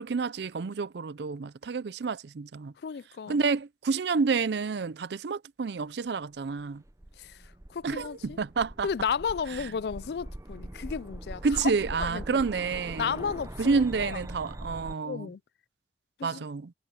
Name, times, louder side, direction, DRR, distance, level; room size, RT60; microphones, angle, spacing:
voice 1, 0.0-2.7 3.3-6.8 7.8-8.9 11.4-13.2 13.6-15.3 16.2-16.7, right 4 dB, 70° right, 0.5 m, -29 dB
voice 2, 2.8-3.4 7.2-8.4 8.8-11.7 12.0-12.4 13.0-14.2 15.0-15.4 16.2-16.4, left 6 dB, 60° left, 0.3 m, -33 dB
sound 1, 6.7-14.9, right 1 dB, 15° right, 0.6 m, -42 dB
head